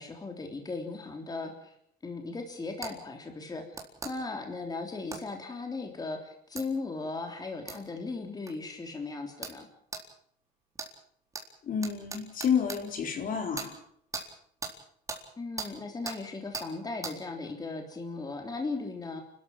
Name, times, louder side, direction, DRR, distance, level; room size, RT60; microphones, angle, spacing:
voice 1, 0.0-1.7 2.0-3.7 4.0-9.7 15.4-19.2, left 3 dB, 20° left, 4 dB, 3.4 m, -37 dB
sound 1, 2.8-2.9 3.7-4.1 5.1-5.2 6.6-6.7 7.7-7.8 8.5-8.6 9.4-9.6 9.9-10.0 10.8-10.9 11.3-11.4 11.8-12.8 13.5-13.7 14.1-14.3 14.6-14.7 15.1-15.2 15.6-15.7 16.1-16.2 16.5-16.7 17.0-17.2, right 3 dB, 20° right, 4.1 m, -38 dB
voice 2, 11.6-13.8, left 7 dB, 55° left, 5 dB, 4.2 m, -30 dB
28.5 x 13.5 x 7.9 m, 0.66 s
cardioid pair, 110°, 17 cm